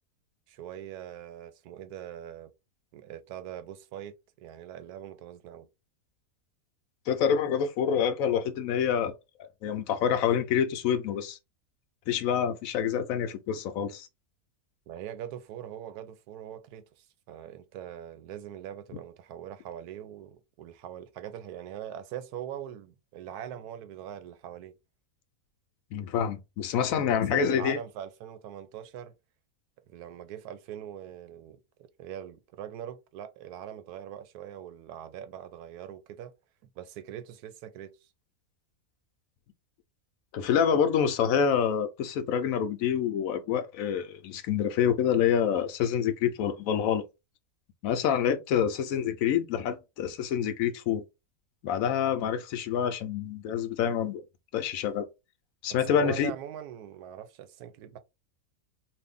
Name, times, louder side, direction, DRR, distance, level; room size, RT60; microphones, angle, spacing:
voice 1, 0.5-2.5 2.9-5.7 14.9-24.7 27.0-29.1 29.9-31.6 32.0-36.3 36.8-37.9 55.9-58.0, right 10 dB, 85° right, 1.1 m, -42 dB
voice 2, 7.1-9.1 9.6-11.4 12.1-14.1 25.9-27.8 40.3-47.0 47.8-51.0 51.6-54.2 54.5-55.1 55.6-56.3, left 8 dB, 70° left, 1.0 m, -27 dB
2.6 x 2.6 x 3.5 m
omnidirectional pair, 1.6 m